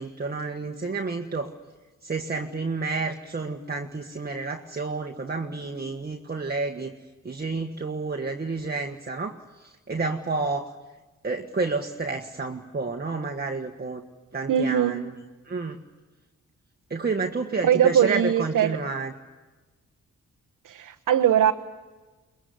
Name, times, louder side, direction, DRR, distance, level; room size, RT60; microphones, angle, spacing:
voice 1, 0.0-1.5 2.0-6.9 7.2-10.7 11.2-14.0 14.3-15.1 15.5-15.8 16.9-19.1, right 3 dB, 30° right, 3 dB, 1.6 m, -30 dB
voice 2, 14.5-15.0 17.6-18.8 20.6-21.5, right 9 dB, 85° right, 5 dB, 1.2 m, -21 dB
23.0 x 22.0 x 9.6 m, 1.2 s
cardioid pair, 85°, 31 cm